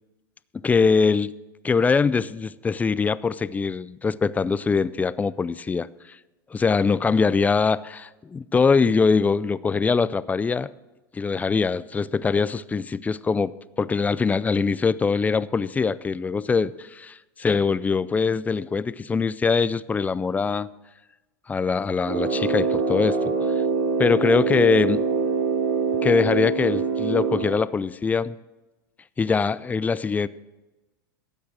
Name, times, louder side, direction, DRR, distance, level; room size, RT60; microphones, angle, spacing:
voice 1, 0.6-1.3 1.6-5.9 6.5-10.7 11.1-13.5 13.8-20.7 21.5-23.3 24.0-25.0 26.0-28.4 29.2-30.3, left 5 dB, 15° left, 18 dB, 0.4 m, -22 dB
Brass instrument, 22.0-27.6, right 5 dB, 65° right, 2.8 m, -24 dB
13.5 x 8.9 x 6.3 m, 1.1 s
hypercardioid pair, 110°, 11 cm